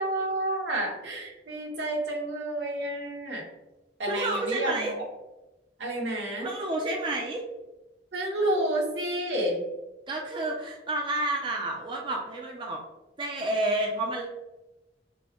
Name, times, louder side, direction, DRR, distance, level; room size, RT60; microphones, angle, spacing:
voice 1, 0.0-3.5 4.0-5.0 5.8-6.5 8.1-9.6, right 1 dB, 80° right, -1 dB, 1.1 m, -30 dB
voice 2, 4.1-4.9 6.4-7.4 10.1-12.8 13.2-14.3, right 1 dB, 30° right, 0 dB, 0.4 m, -30 dB
5.3 x 2.1 x 2.9 m, 1.0 s
head